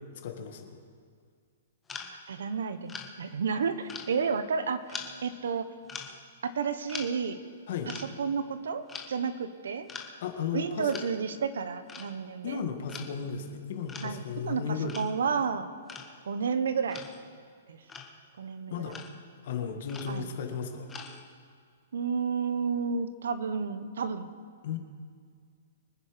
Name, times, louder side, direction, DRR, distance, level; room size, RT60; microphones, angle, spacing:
voice 1, 0.2-0.8 7.7-7.9 10.2-10.9 12.4-14.9 18.7-19.0 19.4-20.9 24.6-24.8, left 7 dB, 45° left, 4 dB, 1.8 m, -35 dB
sound 1, 1.9-2.1 2.9-3.1 3.9-4.5 4.9-5.2 5.8-6.2 6.9-7.1 7.9-8.1 8.9-9.1 9.9-10.1 10.9-11.1 11.9-12.1 12.9-13.1 13.9-14.2 14.9-15.1 15.9-16.1 16.9-17.3 17.9-18.2 18.9-19.3 19.9-20.4 20.9-21.4, left 5 dB, 10° left, 0.9 m, -42 dB
voice 2, 2.3-5.7 6.4-7.4 7.9-9.9 10.5-12.6 14.0-15.7 16.2-17.0 17.7-17.8 18.4-18.9 20.1-20.3 21.9-24.3, right 6 dB, 80° right, 12 dB, 1.1 m, -31 dB
24.0 x 9.8 x 5.2 m, 2.1 s
hypercardioid pair, 175°, 0 cm